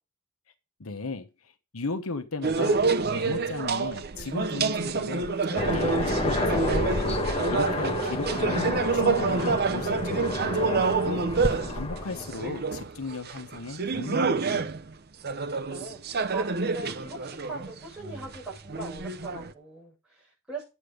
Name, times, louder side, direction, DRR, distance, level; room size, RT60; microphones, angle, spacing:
voice 1, 0.8-2.8 3.1-7.2 7.5-11.3 11.7-14.7, left 3 dB, 80° left, 1.1 m, -36 dB
sound 1, 2.4-14.9 15.2-19.5, right 4 dB, 45° right, 0.7 m, -28 dB
Aircraft, 5.6-12.6, left 1 dB, 25° left, 1.2 m, -29 dB
voice 2, 15.6-20.6, right 3 dB, 5° right, 7.6 m, -41 dB
9.8 x 8.3 x 5.1 m
head